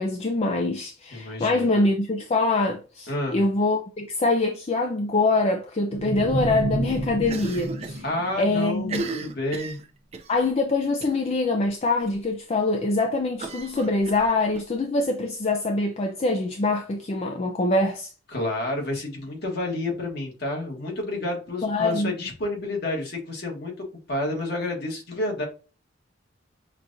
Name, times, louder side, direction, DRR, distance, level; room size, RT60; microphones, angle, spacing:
voice 1, 0.0-8.0 8.4-9.0 10.3-18.1 21.6-22.1, left 2 dB, 30° left, 0.4 m, -24 dB
voice 2, 1.1-1.7 3.1-3.4 8.0-9.0 9.2-9.8 18.3-25.4, left 2 dB, 55° left, 1.4 m, -30 dB
sound 1, 5.9-9.2, right 1 dB, 75° right, 0.9 m, -31 dB
Cough, 7.2-8.0 8.3-8.4 8.8-10.3 11.0-11.3 11.6-11.7 12.1-12.2 13.4-14.6, right 3 dB, 35° right, 0.5 m, -35 dB
5.7 x 2.4 x 2.6 m
head